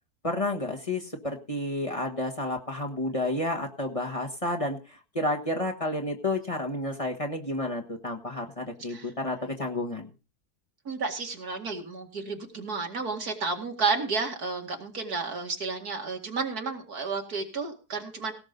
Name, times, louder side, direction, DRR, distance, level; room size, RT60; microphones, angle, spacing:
voice 1, 0.2-10.1, left 1 dB, 20° left, 2 dB, 1.4 m, -31 dB
voice 2, 10.9-18.3, right 4 dB, 75° right, 2 dB, 2.7 m, -31 dB
17.5 x 7.4 x 5.3 m, 0.34 s
omnidirectional pair, 1.7 m